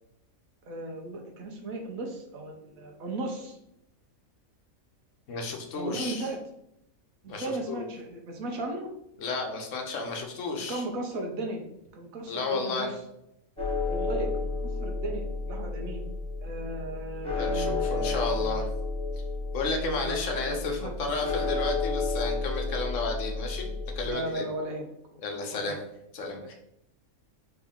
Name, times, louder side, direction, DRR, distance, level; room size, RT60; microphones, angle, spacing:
voice 1, 0.6-3.6 5.7-6.4 7.2-8.9 10.7-11.6 11.9-13.0 13.8-16.0 16.4-18.6 19.9-21.1 24.0-24.9 25.5-25.8, right 2 dB, 75° right, 2 dB, 1.3 m, -36 dB
voice 2, 5.3-6.3 7.3-7.8 9.2-10.8 12.3-12.9 17.4-18.7 19.5-24.4 25.2-25.8 26.1-26.6, left 3 dB, 65° left, 3 dB, 1.0 m, -32 dB
sound 1, 13.6-24.1, left 3 dB, 5° left, 1.2 m, -31 dB
4.4 x 3.0 x 3.6 m, 0.81 s
omnidirectional pair, 1.5 m